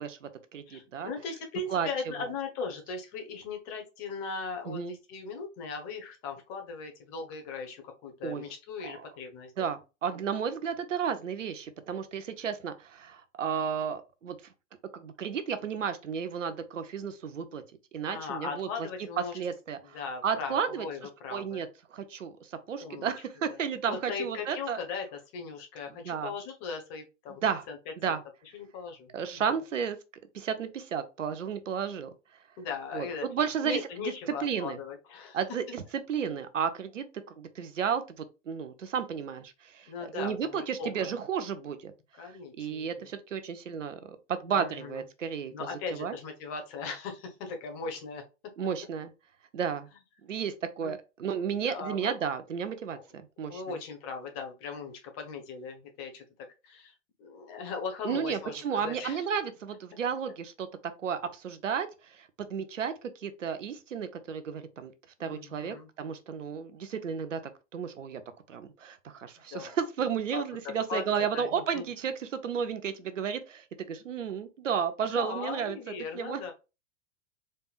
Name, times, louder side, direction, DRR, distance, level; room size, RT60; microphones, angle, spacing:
voice 1, 0.0-1.1 1.7-1.9 4.7-5.0 8.2-8.4 8.8-9.1 9.6-14.4 14.9-17.6 17.9-18.7 19.3-20.9 21.3-24.8 26.0-26.3 27.4-27.6 28.0-28.2 29.1-30.0 30.3-32.1 32.9-33.8 34.4-34.8 35.3-37.0 37.4-41.9 42.2-45.5 45.9-46.1 48.6-49.1 49.5-49.9 50.2-53.8 58.0-60.7 61.0-64.9 65.2-67.4 67.7-68.2 68.5-75.8 76.1-76.5, right 7 dB, 85° right, 0.7 m, -33 dB
voice 2, 0.7-9.7 18.1-19.4 19.9-21.6 22.8-23.1 23.6-27.8 28.1-28.2 28.5-29.4 32.6-33.2 33.6-35.4 39.9-41.1 42.2-43.1 44.5-45.0 45.5-48.2 50.8-51.0 51.6-52.1 52.9-53.0 53.5-56.2 56.6-59.2 65.2-65.9 69.5-69.8 70.3-71.9 75.1-76.5, left 5 dB, 40° left, 1.4 m, -39 dB
4.2 x 3.4 x 2.4 m
figure-of-eight pair, 100°, 37 cm